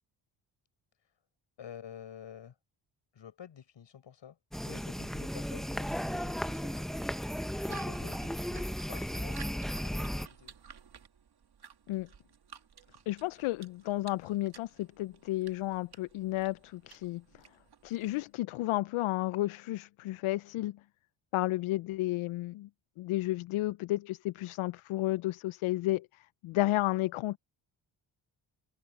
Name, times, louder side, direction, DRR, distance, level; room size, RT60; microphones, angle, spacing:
voice 1, 1.6-2.5 3.1-6.9 7.6-10.6, left 9 dB, 60° left, 6.6 m, -50 dB
sound 1, 4.5-10.3, equal, ahead, 0.8 m, -35 dB
sound 2, 7.5-18.3, right 7 dB, 50° right, 2.4 m, -55 dB
voice 2, 13.1-17.2 17.8-20.8 21.3-22.7 23.0-27.4, left 17 dB, 80° left, 0.6 m, -32 dB
cardioid pair, 65°, 49 cm